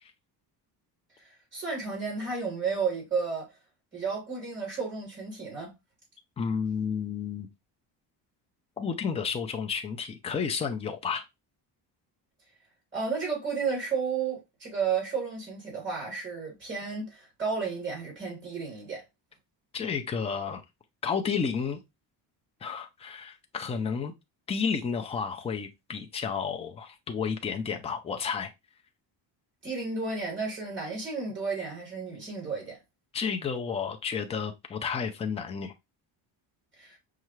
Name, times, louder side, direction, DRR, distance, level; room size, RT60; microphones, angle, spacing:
voice 1, 1.5-3.5 3.9-5.7 12.9-19.0 29.6-32.8 36.8-37.0, right 5 dB, 25° right, 2.9 m, -32 dB
voice 2, 6.4-7.5 8.8-11.2 19.7-20.6 21.0-21.8 22.6-24.1 24.5-28.5 33.1-35.7, left 6 dB, 15° left, 0.4 m, -31 dB
5.5 x 2.4 x 3.0 m
cardioid pair, 160°, 43 cm